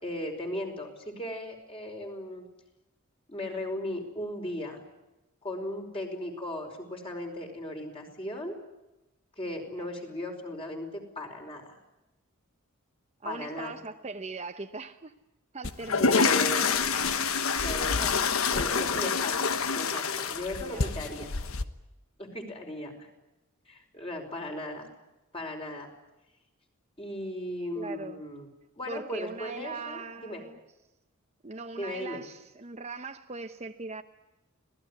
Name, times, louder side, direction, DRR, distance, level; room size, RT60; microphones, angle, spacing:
voice 1, 0.0-2.5 3.3-4.8 5.4-8.6 9.4-11.8 13.2-13.7 16.0-16.9 17.5-18.0 18.5-21.3 22.2-23.1 23.7-24.9 25.3-25.9 27.0-28.5 28.8-30.4 31.7-32.2, left 1 dB, 25° left, 3 dB, 5.0 m, -37 dB
voice 2, 13.2-15.1 15.5-16.3 18.0-18.3 20.6-21.0 27.8-28.2 28.9-30.6 31.4-34.0, right 3 dB, 30° right, 7 dB, 0.9 m, -40 dB
sound 1, 15.6-21.6, left 5 dB, 75° left, 1.3 m, -27 dB
25.5 x 18.5 x 9.7 m, 0.98 s
head